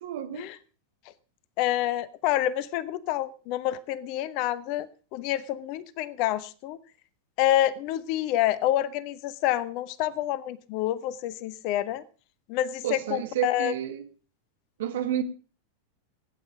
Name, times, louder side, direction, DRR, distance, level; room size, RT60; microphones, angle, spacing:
voice 1, 0.0-0.5 12.8-14.1 14.8-15.2, right 11 dB, 55° right, 1.7 m, -30 dB
voice 2, 1.6-6.8 7.4-12.0 12.5-13.7, left 13 dB, 45° left, 0.8 m, -28 dB
15.5 x 9.3 x 5.1 m
figure-of-eight pair, 90°, 0 cm